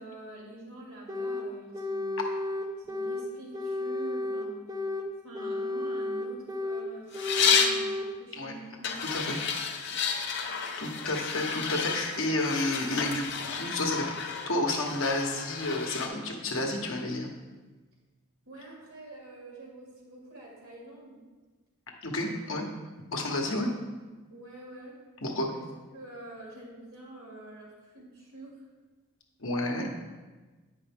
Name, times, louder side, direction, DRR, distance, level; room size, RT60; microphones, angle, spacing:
voice 1, 0.0-2.2 2.9-4.7 5.2-8.7 18.5-21.2 23.4-23.6 24.3-25.0 25.5-25.6 25.9-28.6, right 1 dB, 75° right, -3 dB, 2.3 m, -46 dB
sound 1, 1.1-1.5 1.7-3.3 3.5-5.1 5.3-6.9 7.1-8.1, left 2 dB, 15° right, 0.5 m, -32 dB
sound 2, 7.1-7.8 8.8-16.1, left 6 dB, 50° left, 0.6 m, -31 dB
voice 2, 9.0-9.4 10.1-10.3 10.8-17.3 22.0-22.7 23.1-23.7 25.2-25.5 29.4-29.9, left 2 dB, 65° left, 1 dB, 1.1 m, -31 dB
8.7 x 5.4 x 3.5 m, 1.3 s
head